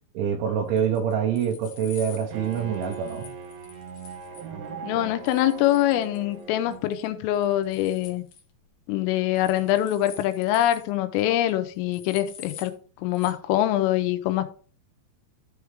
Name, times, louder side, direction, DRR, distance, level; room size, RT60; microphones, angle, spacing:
voice 1, 0.1-3.3, right 8 dB, 75° right, 3.3 m, -26 dB
sound 1, 0.8-4.5 5.3-6.4 6.7-7.1 7.3-8.4 9.4-10.9 11.2-11.3 11.5-11.6 11.9-12.8 13.1-13.3, left 7 dB, 70° left, 2.2 m, -47 dB
Bowed string instrument, 2.3-7.1, right 5 dB, 60° right, 2.8 m, -39 dB
voice 2, 4.8-8.2 8.9-12.7 13.0-14.5, left 13 dB, 90° left, 3.4 m, -24 dB
13.0 x 4.7 x 3.5 m
omnidirectional pair, 5.8 m